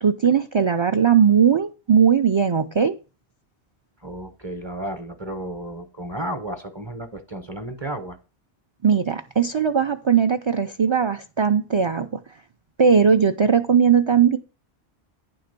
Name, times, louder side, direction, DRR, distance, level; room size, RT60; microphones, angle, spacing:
voice 1, 0.0-2.9 8.8-12.2 12.8-14.4, right 7 dB, 50° right, 0.3 m, -19 dB
voice 2, 4.0-8.2, right 1 dB, 30° right, 0.7 m, -33 dB
9.5 x 3.9 x 6.7 m
omnidirectional pair, 1.1 m